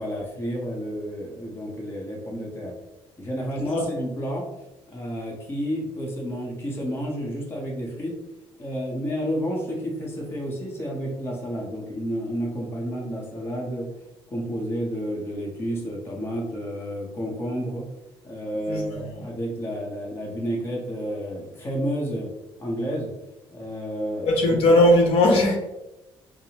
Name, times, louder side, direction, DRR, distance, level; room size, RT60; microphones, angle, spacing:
voice 1, 0.0-2.7 3.2-4.5 4.9-8.2 8.6-13.9 14.3-17.9 18.2-22.3 22.6-23.1 23.5-24.6, equal, 25° left, -2 dB, 0.8 m, -30 dB
voice 2, 18.7-19.2 24.2-25.6, left 1 dB, 75° left, 1 dB, 0.9 m, -19 dB
5.3 x 2.0 x 2.8 m, 0.96 s
cardioid pair, 145°, 10 cm